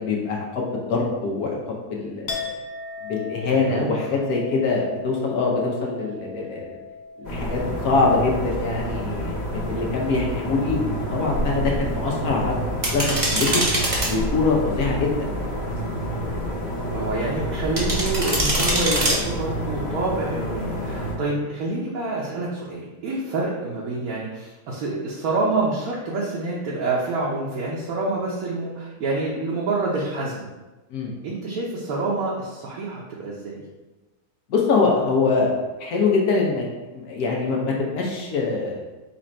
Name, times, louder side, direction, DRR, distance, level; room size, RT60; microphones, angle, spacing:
voice 1, 0.0-2.4 3.0-6.8 7.2-12.6 12.9-13.6 14.0-15.1 30.9-31.1 34.5-35.5 35.8-36.6 36.9-38.8, left 4 dB, 80° left, -1 dB, 1.3 m, -24 dB
Chink clink, 2.3-10.0 10.3-11.0, left 4 dB, 55° left, 0.5 m, -38 dB
voice 2, 3.4-3.9 16.9-30.5 31.2-33.6, right 2 dB, 75° right, -4 dB, 1.2 m, -27 dB
sound 1, 7.2-21.1, equal, 35° left, 0.9 m, -28 dB
sound 2, 12.8-14.1 17.8-19.1, right 1 dB, 30° right, 0.8 m, -23 dB
4.2 x 2.5 x 4.3 m, 1.1 s
omnidirectional pair, 1.6 m